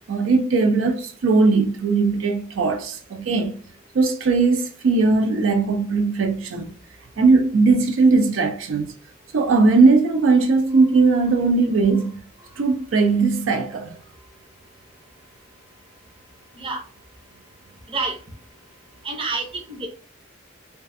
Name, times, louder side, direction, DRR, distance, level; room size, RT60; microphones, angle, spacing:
voice 1, 0.1-3.5 3.9-6.7 7.2-8.9 9.3-12.1 12.6-13.9, right 3 dB, 80° right, 0.4 m, -19 dB
voice 2, 19.0-19.9, right 3 dB, 25° right, 0.6 m, -28 dB
2.3 x 2.3 x 2.5 m
head